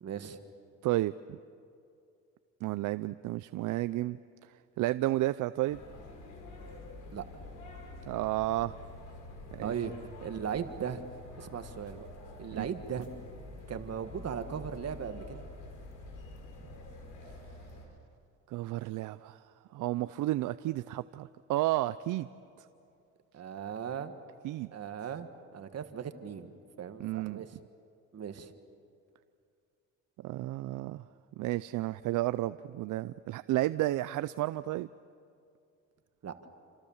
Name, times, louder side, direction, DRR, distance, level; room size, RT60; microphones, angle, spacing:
voice 1, 0.0-0.4 7.1-7.2 9.6-9.9 10.2-11.0 11.4-12.1 12.4-13.1 13.7-15.4 23.3-24.1 24.7-27.5 28.1-28.5 36.2-36.5, right 7 dB, 55° right, 9 dB, 1.7 m, -38 dB
voice 2, 0.8-1.4 2.6-4.2 4.8-5.8 8.1-8.7 9.5-9.7 12.6-12.7 18.5-19.4 19.7-22.3 24.4-24.7 27.0-27.4 30.2-31.0 31.4-34.9, right 16 dB, 85° right, 14 dB, 0.6 m, -32 dB
sound 1, 5.7-17.9, left 2 dB, 80° left, 5.3 m, -47 dB
28.5 x 27.0 x 7.3 m, 2.4 s
cardioid pair, 90°, 30 cm